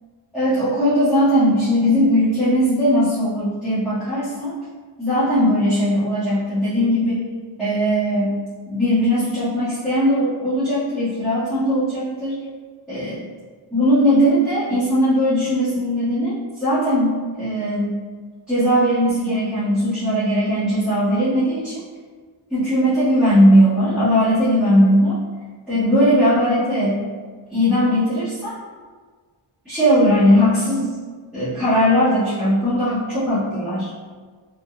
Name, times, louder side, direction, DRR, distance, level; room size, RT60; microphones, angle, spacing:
voice 1, 0.3-4.5 5.0-7.3 7.6-8.4 8.7-12.3 12.9-13.2 13.7-17.9 18.5-21.8 22.5-25.2 25.7-27.0 27.5-28.5 29.6-30.9 31.3-33.9, equal, ahead, -15 dB, 1.1 m, -19 dB
3.8 x 2.4 x 2.4 m, 1.5 s
wide cardioid pair, 95°, 49 cm